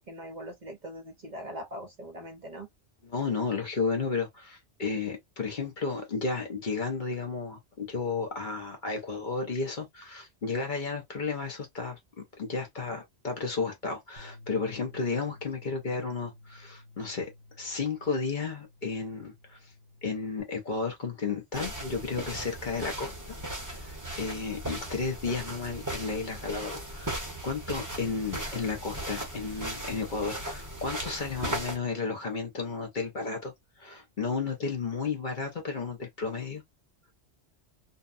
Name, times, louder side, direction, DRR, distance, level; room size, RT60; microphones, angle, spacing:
voice 1, 0.1-2.7, equal, 45° right, 0.8 m, -41 dB
voice 2, 3.0-17.3 17.6-19.7 20.0-23.4 23.6-33.5 33.8-36.6, left 4 dB, 50° left, 0.8 m, -33 dB
Bass guitar, 14.2-20.4, left 2 dB, 75° left, 1.3 m, -53 dB
sound 1, 21.5-31.8, right 1 dB, 20° right, 0.9 m, -37 dB
2.6 x 2.2 x 2.4 m
omnidirectional pair, 1.2 m